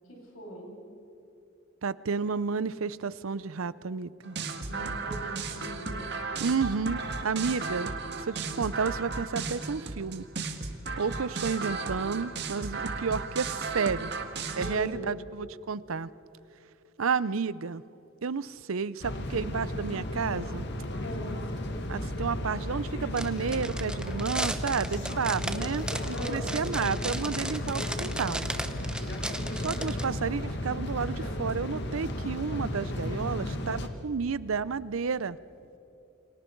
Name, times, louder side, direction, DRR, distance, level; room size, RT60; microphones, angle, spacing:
voice 1, 0.1-0.7 4.6-6.1 14.5-15.2 21.0-21.3 26.1-26.5, right 1 dB, 70° left, -2 dB, 7.5 m, -40 dB
voice 2, 1.8-4.4 6.4-7.9 8.2-10.2 11.0-14.1 14.6-16.1 17.0-17.8 18.2-20.7 21.9-28.5 28.9-29.1 29.6-35.4, right 5 dB, 80° right, 18 dB, 0.6 m, -31 dB
sound 1, 4.2-14.8, right 4 dB, 55° right, 1.7 m, -35 dB
sound 2, 19.0-33.9, left 1 dB, 55° left, 1.8 m, -34 dB
sound 3, 23.2-30.1, right 1 dB, 5° right, 0.8 m, -36 dB
29.0 x 25.0 x 4.6 m, 2.9 s
head